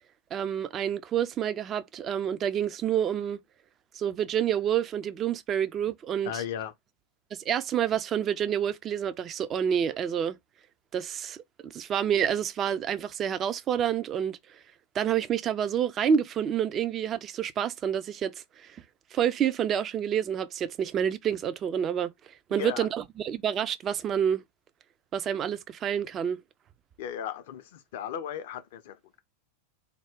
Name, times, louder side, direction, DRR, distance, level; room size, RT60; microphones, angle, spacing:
voice 1, 0.3-3.4 3.9-6.3 7.5-10.4 10.9-14.6 14.9-18.8 19.1-24.4 25.1-26.4, right 9 dB, 30° right, 0.3 m, -28 dB
voice 2, 6.2-6.7 22.5-22.9 27.0-29.2, left 9 dB, 50° left, 0.4 m, -36 dB
3.5 x 2.1 x 3.5 m
figure-of-eight pair, 90°, 0 cm